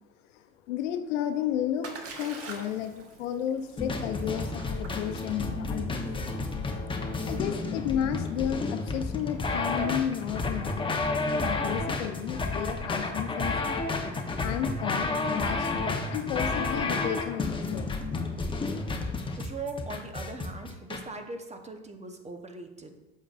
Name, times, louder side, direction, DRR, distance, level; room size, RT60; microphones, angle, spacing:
voice 1, 0.3-1.9 2.2-6.0 7.3-13.8 14.4-18.0, left 10 dB, 80° left, 8 dB, 0.7 m, -33 dB
Splash splatter, 1.1-11.0, right 4 dB, 40° right, 1.3 m, -48 dB
sound 1, 3.8-21.0, left 3 dB, 15° left, 0.9 m, -31 dB
voice 2, 19.4-23.0, right 3 dB, 20° right, 5 dB, 0.9 m, -40 dB
8.4 x 6.5 x 2.5 m, 1.0 s
hypercardioid pair, 80°, 36 cm